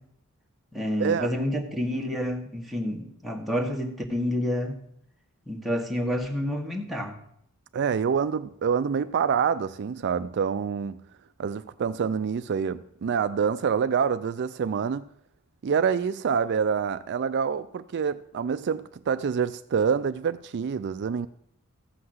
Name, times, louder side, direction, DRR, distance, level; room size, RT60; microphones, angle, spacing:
voice 1, 0.7-4.8 5.5-7.2, left 1 dB, ahead, 1.5 m, -29 dB
voice 2, 7.7-11.0 11.4-15.0 15.6-21.3, right 6 dB, 50° right, 0.4 m, -26 dB
14.5 x 5.8 x 7.8 m
head